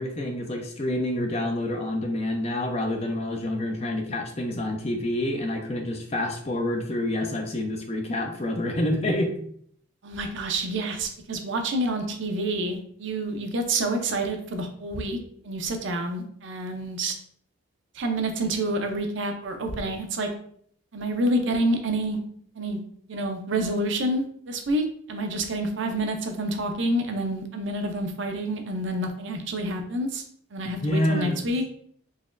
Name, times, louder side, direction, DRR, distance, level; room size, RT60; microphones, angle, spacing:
voice 1, 0.0-9.3 30.8-31.4, left 1 dB, 30° left, 3 dB, 0.5 m, -27 dB
voice 2, 10.0-15.2 15.4-17.2 17.9-20.3 20.9-22.2 22.6-22.8 23.1-30.2 30.5-31.6, right 1 dB, 60° right, 4 dB, 0.5 m, -28 dB
4.0 x 3.0 x 2.5 m, 0.62 s
head